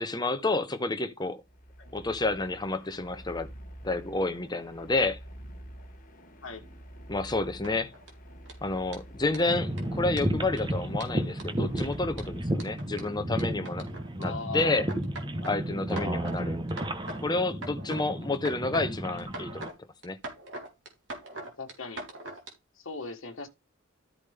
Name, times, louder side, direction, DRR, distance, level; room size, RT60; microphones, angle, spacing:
voice 1, 0.0-1.4 1.9-3.5 3.8-5.2 7.1-7.9 8.6-13.8 14.2-14.9 15.4-16.6 17.2-19.7 20.0-20.2, left 2 dB, 20° left, 0.9 m, -30 dB
sound 1, 1.4-13.1, equal, 40° left, 1.5 m, -48 dB
sound 2, 7.6-8.1 8.5-8.6 8.9-9.0 9.3-9.4 9.8-9.9 10.2-10.6 11.0-14.2 14.6-15.5 15.9-16.4 16.7-17.2 17.5-18.0 18.3-18.9 19.2-19.7 20.0-22.5, right 2 dB, 60° right, 3.3 m, -41 dB
sound 3, 9.5-19.7, right 1 dB, 20° right, 1.1 m, -33 dB
voice 2, 14.2-14.8 15.9-16.2 18.8-19.0 21.3-22.0 22.7-23.5, left 4 dB, 65° left, 1.5 m, -39 dB
13.0 x 5.1 x 3.4 m
head